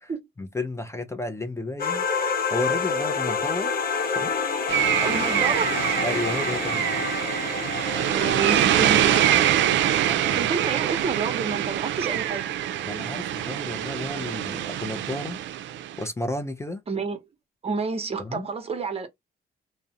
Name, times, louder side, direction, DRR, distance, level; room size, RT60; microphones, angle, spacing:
voice 1, 0.4-2.1 2.5-3.7 4.1-4.3 6.0-7.0 10.0-10.4 12.9-15.4 16.0-16.8 18.2-18.5, left 2 dB, 15° left, 0.5 m, -32 dB
sound 1, 1.8-10.4, left 5 dB, 45° left, 0.8 m, -29 dB
sound 2, 4.7-16.0, right 11 dB, 70° right, 0.4 m, -24 dB
voice 2, 5.0-6.0 8.1-9.4 10.4-12.5 16.9-17.2 17.6-19.1, right 4 dB, 30° right, 0.8 m, -29 dB
2.4 x 2.0 x 2.6 m
cardioid pair, 90°, 20 cm